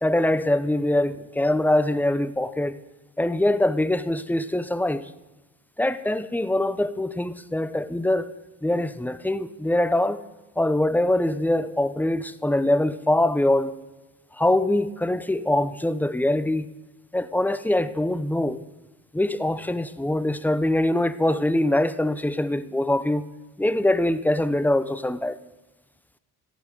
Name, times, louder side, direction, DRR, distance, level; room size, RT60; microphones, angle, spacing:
voice 1, 0.0-2.8 3.2-5.1 5.8-8.3 8.6-10.2 10.6-13.7 14.3-16.7 17.1-18.6 19.1-23.3 23.6-25.4, left 1 dB, 5° left, 0.6 m, -23 dB
14.0 x 9.2 x 6.5 m
cardioid pair, 75°, 38 cm